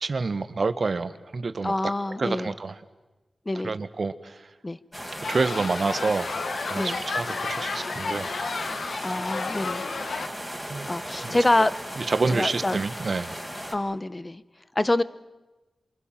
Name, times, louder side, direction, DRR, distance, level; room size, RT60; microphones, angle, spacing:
voice 1, 0.0-1.7 2.2-2.8 3.6-4.5 5.3-6.3 6.7-8.3 10.0-10.1 10.7-11.4 12.0-13.4, right 4 dB, 60° right, 12 dB, 1.5 m, -28 dB
voice 2, 1.6-2.5 3.5-3.7 4.6-4.8 6.7-7.0 9.0-9.8 10.9-11.7 12.3-12.8 13.7-14.4 14.7-15.0, left 2 dB, 30° left, 16 dB, 1.1 m, -26 dB
sound 1, 4.9-13.7, equal, 10° left, 5.3 m, -37 dB
sound 2, 5.2-10.3, left 4 dB, 75° left, 1.6 m, -32 dB
28.0 x 24.5 x 7.5 m, 1.1 s
cardioid pair, 40°, 0 cm